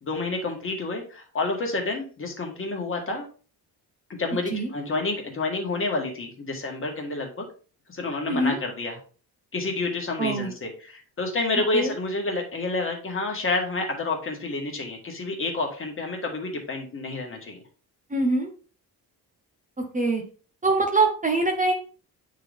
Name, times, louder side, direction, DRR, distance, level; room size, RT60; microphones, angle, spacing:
voice 1, 0.0-3.2 4.2-7.4 7.9-9.0 9.5-17.6, left 3 dB, 30° left, 2 dB, 1.6 m, -29 dB
voice 2, 8.3-8.6 10.2-10.5 11.7-11.9 18.1-18.5 19.8-20.2 20.6-21.7, right 3 dB, 20° right, 2 dB, 0.8 m, -23 dB
8.7 x 3.9 x 3.4 m, 0.39 s
cardioid pair, 150°, 40 cm